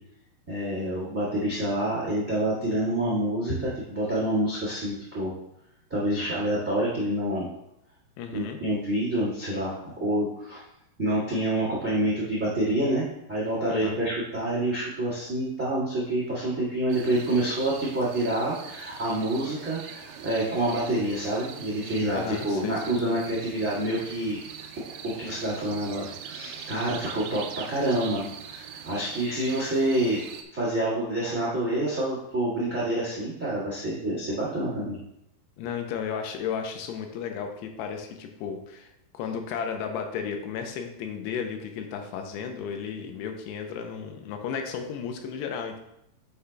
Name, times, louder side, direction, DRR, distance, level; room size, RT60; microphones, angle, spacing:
voice 1, 0.5-5.3 5.9-7.5 8.3-10.6 11.0-24.4 25.0-30.2 30.5-35.0, right 1 dB, 45° right, -6 dB, 0.9 m, -27 dB
voice 2, 8.2-8.6 13.7-14.0 22.1-23.0 35.6-45.8, left 7 dB, 85° left, 4 dB, 2.7 m, -34 dB
sound 1, 16.9-30.4, right 8 dB, 80° right, 2.3 m, -42 dB
9.8 x 5.8 x 2.3 m, 0.80 s
omnidirectional pair, 4.8 m